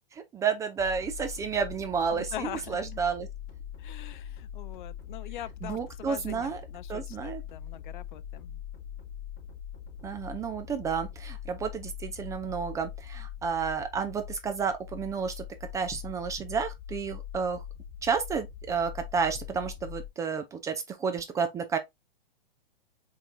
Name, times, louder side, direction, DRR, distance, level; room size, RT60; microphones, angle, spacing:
voice 1, 0.1-3.3 5.6-6.6 6.9-7.4 10.0-15.4 15.7-17.6 18.0-21.8, right 6 dB, 10° right, 0.4 m, -31 dB
sound 1, 0.8-20.1, left 9 dB, 25° left, 2.7 m, -42 dB
voice 2, 2.1-2.8 3.8-8.6, left 12 dB, 55° left, 0.5 m, -42 dB
5.1 x 3.6 x 2.6 m
hypercardioid pair, 130°, 29 cm